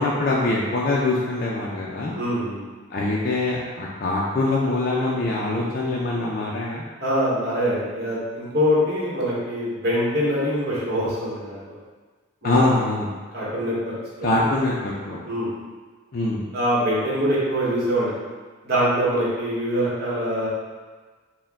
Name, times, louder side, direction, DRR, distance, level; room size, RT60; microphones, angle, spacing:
voice 1, 0.0-2.2 2.9-6.8 12.4-13.1 14.2-15.2 16.1-16.4, left 2 dB, 45° left, -5 dB, 0.4 m, -23 dB
voice 2, 2.1-2.6 7.0-11.7 12.4-12.6 13.3-14.5 15.2-15.5 16.5-18.1 18.6-20.5, equal, 50° right, -7 dB, 1.2 m, -24 dB
4.3 x 2.2 x 3.5 m, 1.4 s
head